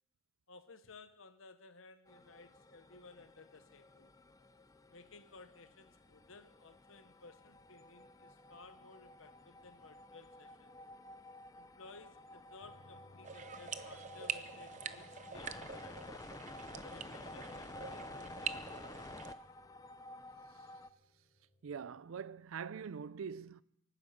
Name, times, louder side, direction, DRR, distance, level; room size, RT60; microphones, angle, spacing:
voice 1, 0.5-4.1 4.9-10.7 11.6-16.2 16.8-19.1, left 3 dB, 75° left, 1.1 m, -58 dB
sound 1, 2.1-20.9, left 2 dB, 15° left, 0.5 m, -52 dB
sound 2, 12.6-22.1, left 1 dB, 50° left, 4.9 m, -66 dB
sound 3, 13.2-19.3, right 7 dB, 35° right, 0.6 m, -45 dB
voice 2, 21.6-23.6, right 6 dB, 85° right, 0.5 m, -43 dB
24.0 x 9.8 x 5.1 m
head